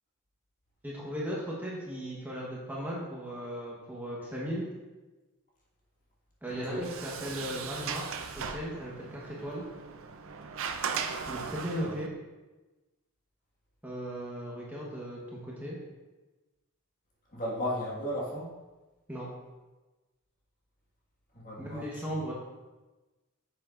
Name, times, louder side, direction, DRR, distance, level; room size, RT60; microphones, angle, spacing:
voice 1, 0.8-4.7 6.4-9.6 11.3-12.1 13.8-15.8 19.1-19.3 21.6-22.3, equal, 10° right, -5 dB, 1.1 m, -37 dB
voice 2, 6.5-6.8 11.8-11.9 17.3-18.5 21.3-21.9, equal, 40° left, -4 dB, 1.7 m, -34 dB
Sliding door, 6.5-12.1, right 6 dB, 65° right, 0.5 m, -38 dB
8.3 x 6.8 x 2.5 m, 1.2 s
head